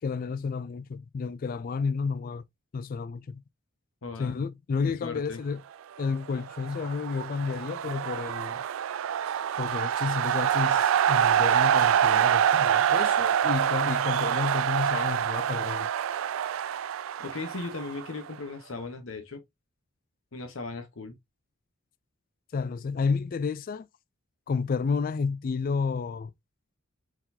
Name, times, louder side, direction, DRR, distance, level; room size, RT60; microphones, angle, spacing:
voice 1, 0.0-2.4 2.7-3.4 4.2-5.6 6.0-8.6 9.6-15.9 22.5-23.9 24.5-26.3, left 5 dB, 45° left, 0.3 m, -31 dB
voice 2, 4.0-4.4 5.0-5.4 17.2-19.4 20.3-21.2, left 3 dB, 70° left, 0.9 m, -37 dB
sound 1, 6.4-18.3, right 9 dB, 75° right, 0.3 m, -26 dB
4.7 x 3.9 x 2.6 m
head